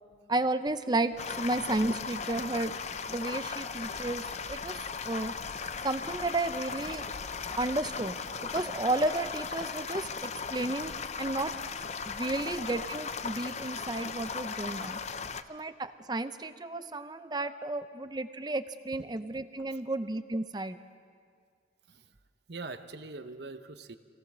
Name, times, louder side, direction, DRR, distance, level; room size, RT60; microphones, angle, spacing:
voice 1, 0.3-2.7 3.1-5.3 5.8-7.1 7.6-11.5 12.1-15.0 15.5-20.8, right 2 dB, 20° right, 11 dB, 0.6 m, -32 dB
sound 1, 1.2-15.4, left 5 dB, 35° left, 0.6 m, -37 dB
voice 2, 22.5-24.0, right 3 dB, 60° right, 9 dB, 0.9 m, -43 dB
26.5 x 17.0 x 6.3 m, 2.1 s
head